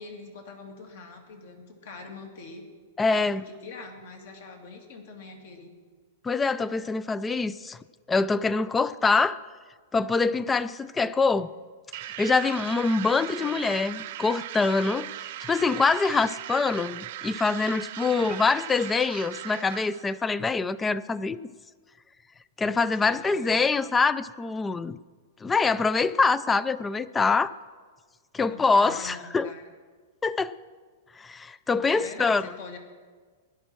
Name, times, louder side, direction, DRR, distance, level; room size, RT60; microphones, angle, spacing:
voice 1, 0.0-2.6 3.1-5.7 13.4-13.6 18.0-18.4 22.8-23.7 28.5-29.6 31.9-32.8, left 3 dB, 60° left, 3 dB, 2.5 m, -43 dB
voice 2, 3.0-3.4 6.2-7.8 8.1-9.4 9.9-11.5 11.9-21.4 22.6-25.0 25.4-27.5 28.3-29.5 30.2-30.5 31.2-32.5, left 4 dB, 10° left, 18 dB, 0.3 m, -25 dB
sound 1, 11.9-20.2, right 14 dB, 50° right, 0.5 m, -38 dB
17.0 x 11.0 x 4.5 m, 1.5 s
supercardioid pair, 160°, 0 cm